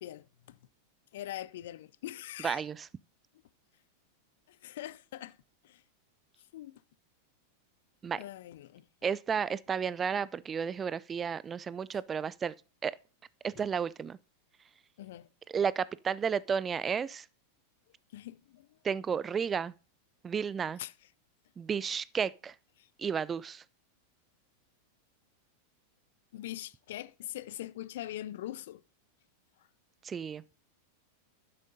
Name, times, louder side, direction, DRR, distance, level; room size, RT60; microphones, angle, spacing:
voice 1, 0.0-0.6 1.1-2.6 4.5-5.4 5.6-5.8 6.4-6.8 8.2-8.9 15.0-15.3 18.1-18.8 20.8-20.9 22.8-22.9 26.3-28.8 29.6-29.7, left 13 dB, 55° left, 0.4 m, -43 dB
voice 2, 2.4-2.9 8.0-8.2 9.0-12.5 12.8-13.0 13.4-14.2 15.5-17.2 18.8-19.7 20.2-20.8 21.6-22.5 23.0-23.6 30.0-30.4, right 6 dB, 20° right, 0.4 m, -32 dB
11.5 x 9.9 x 2.7 m
figure-of-eight pair, 90°, 0 cm